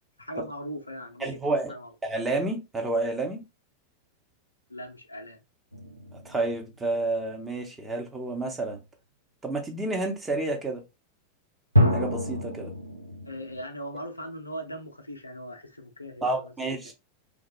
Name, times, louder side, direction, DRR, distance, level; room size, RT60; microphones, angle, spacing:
voice 1, 0.2-1.9 4.7-5.4 13.3-16.5 16.8-16.9, equal, 80° left, 0.5 m, -39 dB
voice 2, 1.2-1.7 2.0-3.4 6.2-8.8 9.4-10.8 11.9-12.7 16.2-16.9, right 2 dB, 15° right, 0.8 m, -29 dB
sound 1, 5.7-7.0 11.7-13.6, equal, 90° right, 0.5 m, -27 dB
3.1 x 2.2 x 2.8 m
figure-of-eight pair, 90°, 0 cm